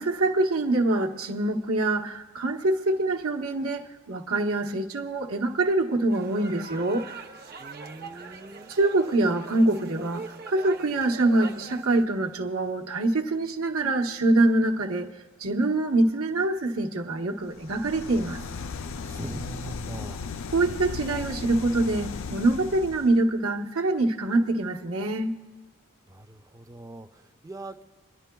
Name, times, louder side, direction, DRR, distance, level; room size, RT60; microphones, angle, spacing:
voice 1, 0.0-7.1 8.2-8.3 8.7-15.1 15.4-18.4 20.5-25.4, right 2 dB, 75° right, 1.1 m, -25 dB
sound 1, 6.1-12.1, right 4 dB, 45° right, 0.8 m, -42 dB
voice 2, 7.6-8.7 19.0-20.2 26.1-27.8, right 2 dB, 15° right, 0.5 m, -41 dB
sound 2, 17.5-23.2, left 5 dB, 65° left, 0.5 m, -36 dB
27.5 x 11.0 x 2.3 m
head